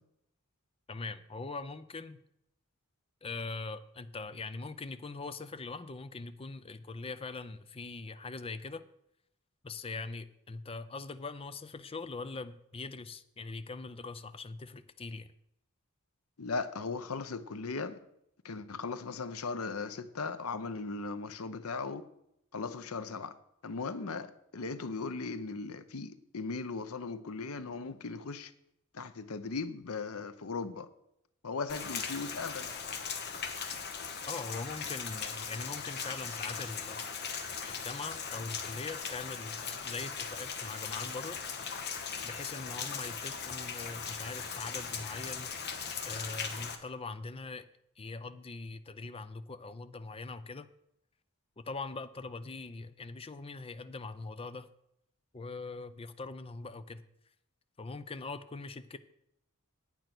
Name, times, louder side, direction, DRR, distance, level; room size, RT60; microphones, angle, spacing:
voice 1, 0.9-2.2 3.2-8.8 9.6-15.3 34.3-37.0 37.7-41.4 42.2-47.7 48.0-50.7 51.6-54.7 55.3-57.0 57.8-59.0, left 3 dB, 25° left, 0.5 m, -42 dB
voice 2, 16.4-18.0 18.4-22.0 22.5-23.3 23.6-28.5 28.9-30.9 31.4-32.7, left 4 dB, 75° left, 0.8 m, -38 dB
Rain, 31.7-46.8, left 6 dB, 50° left, 1.2 m, -39 dB
9.1 x 9.0 x 6.1 m
head